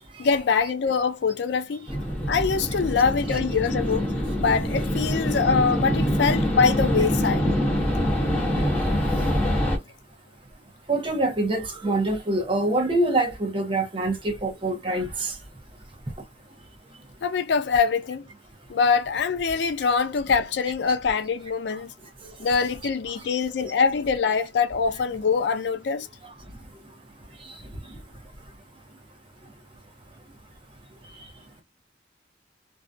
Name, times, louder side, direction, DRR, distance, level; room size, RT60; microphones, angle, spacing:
voice 1, 0.2-1.9 2.3-4.1 4.4-7.5 17.2-18.3 18.7-21.9 22.4-26.1, left 5 dB, 60° left, 0.4 m, -24 dB
sound 1, 1.9-9.8, equal, 10° left, 1.0 m, -25 dB
voice 2, 10.9-15.3, right 2 dB, 30° right, 0.6 m, -25 dB
2.6 x 2.2 x 2.3 m
head